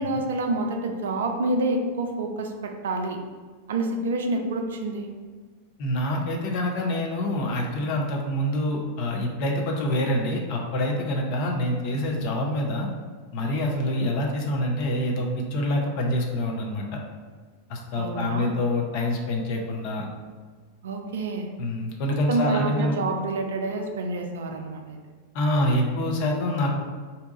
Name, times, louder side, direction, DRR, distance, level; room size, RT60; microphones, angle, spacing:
voice 1, 0.0-3.2 3.7-5.1 17.9-18.5 20.8-21.5 22.3-25.0, right 2 dB, 60° right, 4 dB, 0.4 m, -28 dB
voice 2, 5.8-12.9 13.3-17.0 17.7-20.1 21.6-23.0 25.3-26.8, left 1 dB, 45° left, 0 dB, 0.6 m, -26 dB
2.7 x 2.3 x 3.8 m, 1.5 s
figure-of-eight pair, 90°, 0 cm